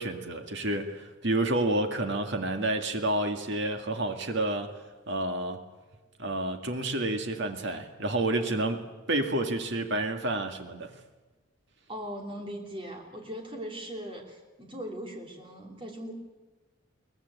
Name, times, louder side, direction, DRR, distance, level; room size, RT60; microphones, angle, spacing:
voice 1, 0.0-4.7 5.1-5.6 6.2-10.9, right 1 dB, 55° right, 5 dB, 2.0 m, -29 dB
voice 2, 11.9-16.1, equal, 25° right, 2 dB, 3.1 m, -39 dB
23.0 x 18.5 x 8.2 m, 1.3 s
head